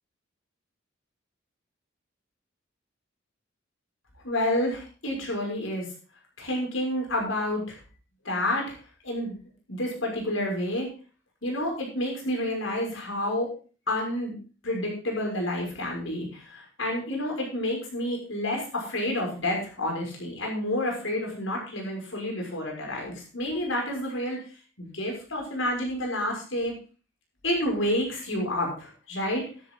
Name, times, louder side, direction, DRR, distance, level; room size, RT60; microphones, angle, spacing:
voice 1, 4.2-5.9 6.4-7.8 8.2-8.7 9.0-9.4 9.7-10.9 11.4-13.5 13.9-14.4 14.6-24.4 24.8-26.7 27.4-29.4, left 1 dB, 75° left, 0 dB, 6.3 m, -29 dB
12.5 x 11.5 x 3.9 m, 0.37 s
head